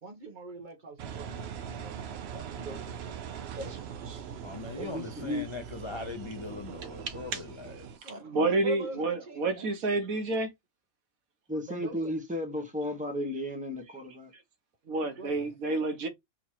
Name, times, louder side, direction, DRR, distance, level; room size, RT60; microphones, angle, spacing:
voice 1, 0.0-3.9 4.8-5.0 8.0-9.7 11.7-12.1 15.0-15.6, right 2 dB, 35° right, 1.4 m, -43 dB
Engine, 1.0-8.0, right 8 dB, 60° right, 0.7 m, -41 dB
voice 2, 4.4-8.1, left 3 dB, 45° left, 0.3 m, -40 dB
voice 3, 4.9-5.4 11.5-14.3, left 1 dB, 5° right, 1.1 m, -34 dB
voice 4, 7.1-7.4 8.0-10.5 14.9-16.1, right 2 dB, 85° right, 1.4 m, -29 dB
3.8 x 2.9 x 4.6 m
omnidirectional pair, 1.4 m